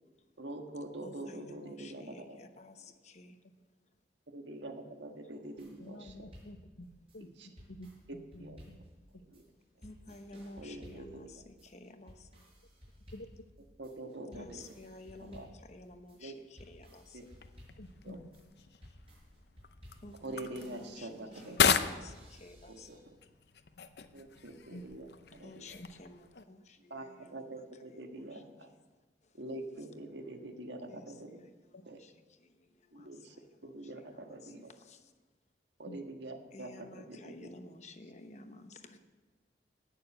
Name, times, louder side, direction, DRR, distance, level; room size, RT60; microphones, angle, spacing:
voice 1, 0.4-2.4 4.3-6.2 7.2-7.5 8.4-8.6 9.3-9.4 10.6-11.3 13.8-14.6 15.3-15.5 16.2-16.4 17.1-17.2 18.0-18.2 20.2-21.6 21.9-22.0 22.7-23.0 24.1-25.5 26.9-28.7 29.3-31.4 31.9-32.0 32.9-33.4 33.6-34.7 35.8-37.5, right 2 dB, 90° right, 4 dB, 1.7 m, -45 dB
voice 2, 1.0-3.4 9.8-12.4 14.3-17.2 20.0-23.1 25.4-28.4 30.9-32.5 32.9-35.0 36.5-39.0, left 2 dB, 40° left, 7 dB, 1.0 m, -53 dB
sound 1, 5.6-23.0, equal, 35° right, 6.0 m, -56 dB
voice 3, 5.8-8.8 9.1-9.2 13.1-13.3 14.3-14.5 17.8-18.3 24.7-24.8 25.7-25.9 31.7-31.8 35.8-36.0, left 1 dB, 90° left, 8 dB, 1.1 m, -49 dB
sound 2, 17.3-26.4, left 7 dB, 70° left, 0.7 m, -36 dB
18.0 x 6.8 x 7.8 m, 1.3 s
head